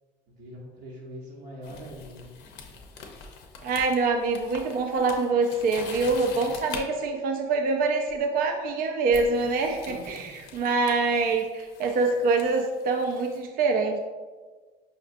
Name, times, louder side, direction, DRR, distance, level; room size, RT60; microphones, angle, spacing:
voice 1, 0.3-2.3 9.9-10.2, equal, 75° right, -6 dB, 0.8 m, -42 dB
sound 1, 1.6-6.8 8.1-8.3 9.1-13.4, left 5 dB, 90° left, 0.5 m, -44 dB
voice 2, 3.6-14.0, right 3 dB, 60° right, 4 dB, 0.4 m, -25 dB
5.2 x 2.4 x 2.5 m, 1.4 s
cardioid pair, 110°, 17 cm